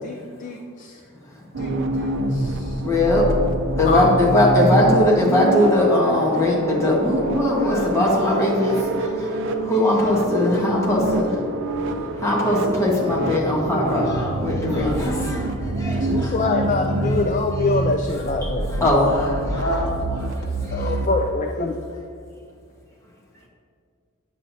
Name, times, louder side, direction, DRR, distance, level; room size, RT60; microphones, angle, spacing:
voice 1, 0.0-1.0 1.6-2.8 3.8-4.1 16.1-18.9 19.3-19.4 20.7-21.7, left 3 dB, 35° left, 3 dB, 0.4 m, -25 dB
sound 1, 1.5-21.1, right 2 dB, 55° right, 0.5 m, -26 dB
voice 2, 2.8-3.2 3.8-11.3 12.2-16.3 18.4-19.6 20.3-20.9, left 1 dB, 15° left, -4 dB, 1.3 m, -20 dB
voice 3, 11.0-14.7 19.5-19.9, equal, 80° left, -2 dB, 1.7 m, -34 dB
9.6 x 7.6 x 2.7 m, 2.1 s
head